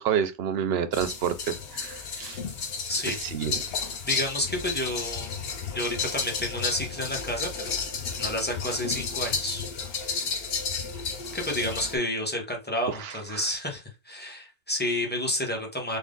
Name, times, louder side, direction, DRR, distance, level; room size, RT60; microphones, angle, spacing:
voice 1, 0.0-2.4 3.1-3.6 13.0-13.5, right 8 dB, 60° right, 0.7 m, -29 dB
sound 1, 0.9-12.0, left 5 dB, 55° left, 0.9 m, -32 dB
voice 2, 4.0-5.4 5.7-7.8 8.2-9.7 10.1-10.2 11.3-16.0, left 1 dB, 10° left, 0.9 m, -30 dB
3.6 x 2.4 x 3.8 m
omnidirectional pair, 1.4 m